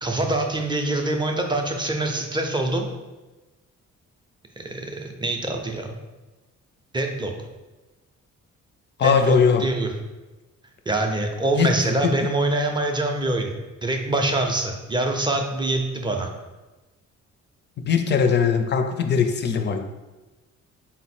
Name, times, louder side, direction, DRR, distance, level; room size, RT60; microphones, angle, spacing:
voice 1, 0.0-2.9 4.6-5.9 6.9-7.3 9.0-9.9 10.9-13.5 13.8-16.3, right 2 dB, 15° right, 3 dB, 0.5 m, -24 dB
voice 2, 9.0-9.6 11.6-12.1 17.9-19.9, left 6 dB, 35° left, 7 dB, 0.4 m, -20 dB
4.1 x 2.0 x 4.1 m, 1.1 s
cardioid pair, 90°, 30 cm